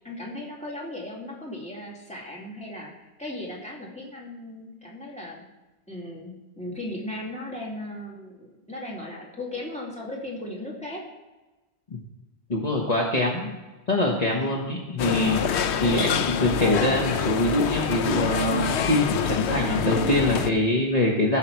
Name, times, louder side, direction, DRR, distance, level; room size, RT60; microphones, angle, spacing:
voice 1, 0.0-5.4 5.9-11.0 14.2-14.4, left 1 dB, 5° left, -3 dB, 2.3 m, -37 dB
voice 2, 12.5-13.6 13.9-21.4, left 1 dB, 35° left, -2 dB, 1.4 m, -24 dB
sound 1, 15.0-20.5, left 7 dB, 85° left, 0.9 m, -26 dB
15.0 x 6.5 x 4.6 m, 1.1 s
omnidirectional pair, 1.1 m